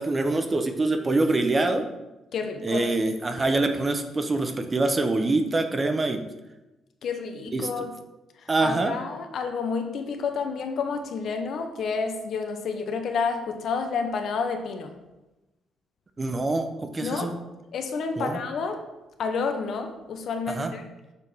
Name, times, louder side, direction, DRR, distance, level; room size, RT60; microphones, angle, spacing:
voice 1, 0.0-1.8 2.6-6.2 7.5-7.7 8.5-8.9 16.2-17.4 18.2-18.4 20.5-20.7, right 2 dB, 25° right, 6 dB, 0.7 m, -25 dB
voice 2, 2.3-2.8 7.0-7.9 8.6-14.9 17.0-17.3 17.7-18.8 19.2-20.8, left 5 dB, 65° left, 5 dB, 0.9 m, -29 dB
6.8 x 3.5 x 6.1 m, 1.0 s
cardioid pair, 110°, 0 cm